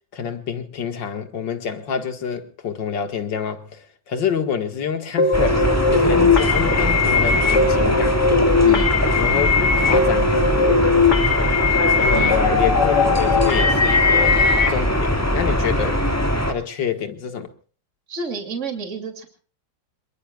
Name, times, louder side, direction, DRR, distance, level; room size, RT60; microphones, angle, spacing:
voice 1, 0.1-8.2 9.2-10.4 12.0-14.4 14.7-16.0 16.5-17.5, left 7 dB, 80° left, 2.4 m, -27 dB
sound 1, 5.2-14.7, left 4 dB, 60° left, 2.5 m, -19 dB
sound 2, 5.3-16.5, equal, 10° left, 1.9 m, -21 dB
voice 2, 8.6-8.9 12.1-12.4 18.1-19.3, right 5 dB, 40° right, 2.9 m, -30 dB
27.0 x 21.5 x 2.4 m
omnidirectional pair, 2.0 m